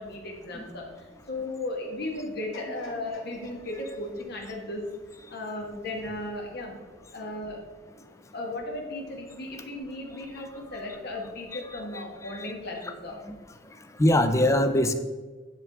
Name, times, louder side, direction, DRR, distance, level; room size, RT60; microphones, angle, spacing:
voice 1, 0.0-4.8 5.3-6.7 7.1-7.6 8.3-13.2, left 1 dB, 60° left, 0 dB, 1.3 m, -36 dB
sound 1, 2.5-5.6 6.1-6.2, left 2 dB, 75° left, 1.8 m, -47 dB
voice 2, 11.5-12.5 13.3-13.4 14.0-14.9, left 1 dB, 15° left, 8 dB, 0.4 m, -24 dB
10.5 x 3.5 x 3.5 m, 1.3 s
head